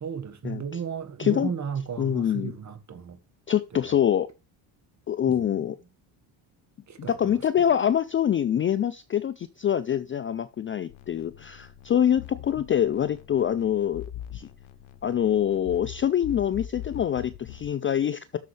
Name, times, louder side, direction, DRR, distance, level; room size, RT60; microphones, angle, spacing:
voice 1, 0.0-3.2 5.3-5.4 6.9-7.4, right 7 dB, 35° right, 1.6 m, -34 dB
voice 2, 1.2-1.5 2.0-2.5 3.5-4.3 5.1-5.8 7.0-14.0 14.3-14.5 15.0-18.4, left 9 dB, 25° left, 0.4 m, -25 dB
sound 1, 10.9-17.7, left 11 dB, 70° left, 1.0 m, -42 dB
12.0 x 6.6 x 3.3 m
supercardioid pair, 85°, 50 cm